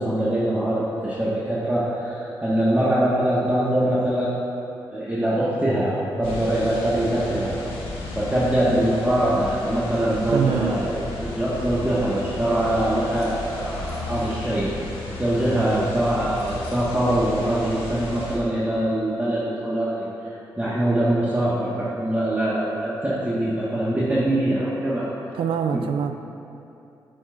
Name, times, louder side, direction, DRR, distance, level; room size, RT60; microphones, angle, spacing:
voice 1, 0.0-4.4 4.9-7.6 8.1-14.7 15.2-25.1 25.7-25.8, right 1 dB, 15° right, -9 dB, 1.7 m, -23 dB
sound 1, 6.2-18.4, left 2 dB, 80° left, 1.1 m, -34 dB
voice 2, 10.3-10.8 25.3-26.1, right 7 dB, 75° right, 7 dB, 0.5 m, -24 dB
8.8 x 8.7 x 2.6 m, 2.8 s
supercardioid pair, 50°, 9 cm